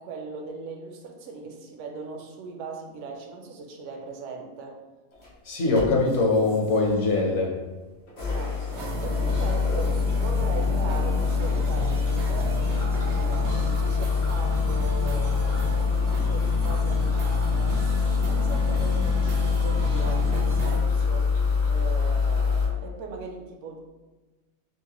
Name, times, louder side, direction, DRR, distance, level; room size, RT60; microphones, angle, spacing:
voice 1, 0.0-4.8 8.3-12.6 13.1-17.8 18.2-21.3 21.7-23.8, right 4 dB, 65° right, 2 dB, 0.9 m, -39 dB
sound 1, 5.1-5.3 5.7-7.3 8.1-22.7, left 5 dB, 75° left, 1.8 m, -25 dB
voice 2, 5.4-7.5, left 3 dB, 60° left, -1 dB, 1.1 m, -22 dB
sound 2, 8.7-20.8, right 1 dB, 85° right, 1.1 m, -34 dB
5.6 x 2.1 x 2.9 m, 1.2 s
omnidirectional pair, 1.5 m